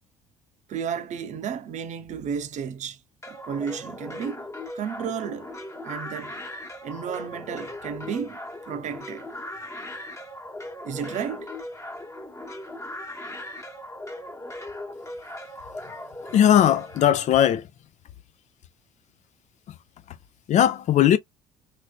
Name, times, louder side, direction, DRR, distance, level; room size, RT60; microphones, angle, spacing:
voice 1, 0.7-3.0 3.3-4.5 4.7-5.5 5.8-6.4 6.8-8.4 8.7-9.3 10.8-11.5, right 7 dB, 50° right, 0.7 m, -32 dB
sound 1, 3.2-17.1, left 1 dB, 20° left, 1.1 m, -38 dB
voice 2, 16.3-17.7 19.7-19.8 20.1-20.2 20.5-21.2, left 10 dB, 50° left, 0.5 m, -19 dB
3.1 x 2.7 x 2.3 m
hypercardioid pair, 60°, 16 cm